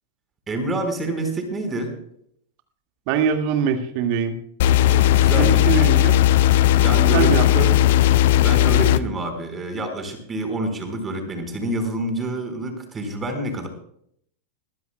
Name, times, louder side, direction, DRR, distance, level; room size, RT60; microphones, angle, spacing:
voice 1, 0.5-1.9 4.8-5.7 6.7-7.3 8.4-13.7, right 2 dB, 20° right, 6 dB, 4.7 m, -28 dB
voice 2, 3.1-4.4 5.4-6.2 7.1-7.9, right 7 dB, 45° right, 6 dB, 2.0 m, -23 dB
sound 1, 4.6-9.0, left 13 dB, 55° left, 0.6 m, -16 dB
22.5 x 15.0 x 2.3 m, 0.67 s
figure-of-eight pair, 90°, 0 cm